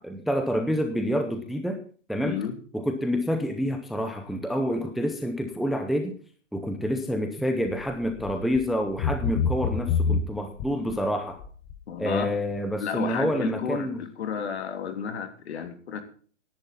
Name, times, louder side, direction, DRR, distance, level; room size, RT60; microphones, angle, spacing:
voice 1, 0.0-1.8 2.1-2.4 2.7-6.1 6.5-11.4 12.0-14.0, equal, ahead, 5 dB, 0.6 m, -28 dB
voice 2, 2.2-2.5 11.9-12.3 12.8-16.0, left 7 dB, 60° left, 7 dB, 3.2 m, -32 dB
sound 1, 7.7-7.9 8.2-8.6 9.0-11.0 11.4-11.8 12.2-12.3, left 6 dB, 25° left, 1.0 m, -26 dB
15.5 x 11.0 x 4.1 m, 0.42 s
hypercardioid pair, 150°, 36 cm